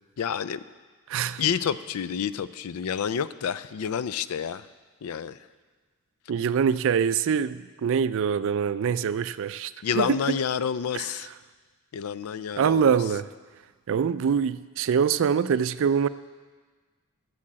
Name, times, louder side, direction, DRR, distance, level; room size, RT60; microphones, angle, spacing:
voice 1, 0.2-0.6 1.4-4.7 5.0-5.4 9.8-11.3 11.9-12.9, left 7 dB, 80° left, 16 dB, 0.4 m, -29 dB
voice 2, 1.1-1.4 6.3-10.4 10.9-11.1 12.6-13.3 13.9-16.1, right 7 dB, 60° right, 15 dB, 0.3 m, -24 dB
8.6 x 7.8 x 7.4 m, 1.4 s
head